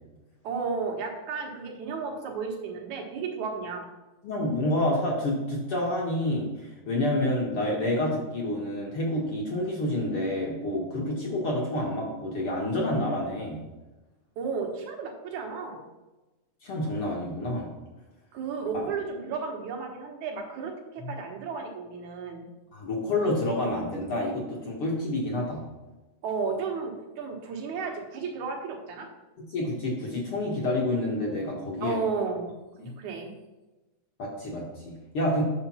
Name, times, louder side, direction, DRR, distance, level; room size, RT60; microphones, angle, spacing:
voice 1, 0.4-3.9 14.4-15.8 18.3-22.5 26.2-29.1 31.8-32.5 33.0-33.3, right 5 dB, 65° right, 2 dB, 2.5 m, -33 dB
voice 2, 4.2-6.5 6.9-13.6 16.6-17.7 21.0-21.1 22.7-25.6 29.5-32.0 32.8-32.9 34.2-35.4, left 1 dB, 50° left, -3 dB, 1.8 m, -28 dB
9.0 x 6.6 x 4.3 m, 1.1 s
omnidirectional pair, 3.9 m